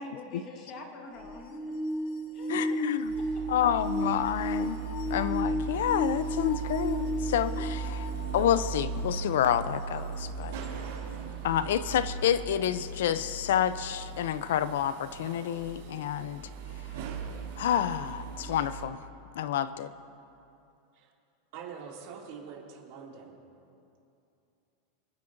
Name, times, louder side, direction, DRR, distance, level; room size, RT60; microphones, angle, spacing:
voice 1, 0.0-1.7 2.3-2.5 3.6-3.7, left 2 dB, 30° left, 3 dB, 1.3 m, -44 dB
sound 1, 1.2-8.8 9.5-9.6 10.6-10.7, left 1 dB, 50° left, 1.0 m, -34 dB
voice 2, 2.5-3.1 3.5-4.8 5.1-10.6 11.4-16.4 17.6-19.0 19.4-19.9, left 10 dB, 75° left, 14 dB, 0.4 m, -29 dB
sound 2, 3.0-18.9, right 5 dB, 70° right, 2.5 m, -38 dB
voice 3, 21.5-23.3, right 6 dB, 45° right, -2 dB, 2.3 m, -44 dB
26.5 x 9.8 x 2.6 m, 2.6 s
supercardioid pair, 175°, 0 cm